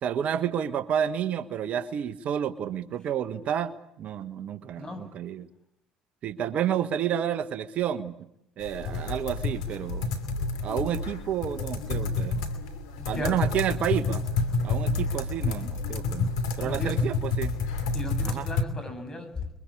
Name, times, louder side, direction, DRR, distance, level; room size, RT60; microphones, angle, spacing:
voice 1, 0.0-5.5 6.2-8.3 8.6-10.1 10.6-12.4 13.1-14.2 14.6-17.6 18.2-18.5, right 9 dB, 55° right, 12 dB, 1.3 m, -30 dB
sound 1, 8.6-18.6, left 3 dB, 85° left, 2.7 m, -29 dB
voice 2, 13.0-13.4 16.6-17.0 17.9-19.5, left 2 dB, 30° left, 7 dB, 7.5 m, -36 dB
29.5 x 23.0 x 8.5 m, 0.80 s
hypercardioid pair, 65°, 3 cm